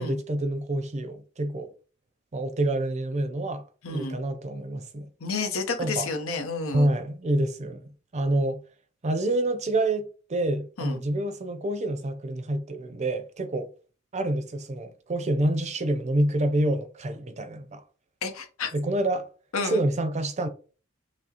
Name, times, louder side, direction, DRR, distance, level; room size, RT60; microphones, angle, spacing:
voice 1, 0.0-1.7 2.3-5.1 5.8-6.1 6.7-8.6 9.0-13.7 14.1-17.8 18.7-19.3 19.6-20.5, right 1 dB, 35° right, 0.5 m, -27 dB
voice 2, 3.8-4.2 5.2-6.9 10.8-11.0 18.2-18.7 19.5-19.8, left 4 dB, 85° left, 0.8 m, -30 dB
6.0 x 2.0 x 2.8 m
head